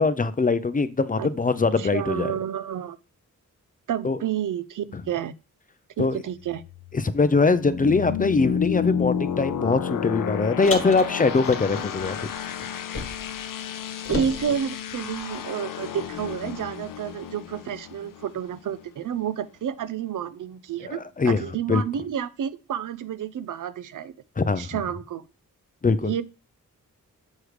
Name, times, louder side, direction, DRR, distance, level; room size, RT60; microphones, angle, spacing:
voice 1, 0.0-2.3 4.0-4.2 4.9-5.0 6.0-6.2 6.9-12.2 20.8-21.4 21.7-21.8 24.4-24.8 25.8-26.1, left 4 dB, 25° left, 0.4 m, -22 dB
voice 2, 1.8-3.0 3.9-5.3 6.0-6.6 14.1-21.0 21.3-24.1 24.6-25.2 26.0-26.2, right 9 dB, 70° right, 0.5 m, -30 dB
sound 1, 6.4-19.0, left 8 dB, 80° left, 0.6 m, -31 dB
Car, 10.6-13.4 13.7-15.5, left 2 dB, 40° left, 1.1 m, -36 dB
6.4 x 3.2 x 4.9 m
wide cardioid pair, 95°, 32 cm